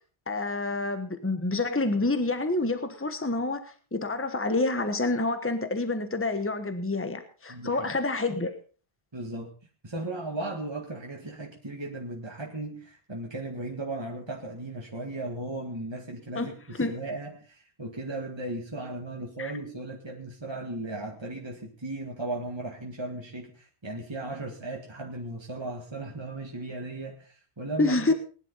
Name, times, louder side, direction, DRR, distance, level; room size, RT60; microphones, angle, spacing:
voice 1, 0.3-3.6 3.9-8.5 16.3-16.5 16.8-16.9 19.4-19.5 27.8-28.1, left 2 dB, 15° left, 9 dB, 1.3 m, -28 dB
voice 2, 7.5-7.9 9.1-9.5 9.8-28.1, right 2 dB, 25° right, 0 dB, 1.9 m, -36 dB
19.5 x 11.0 x 4.2 m, 0.38 s
omnidirectional pair, 1.1 m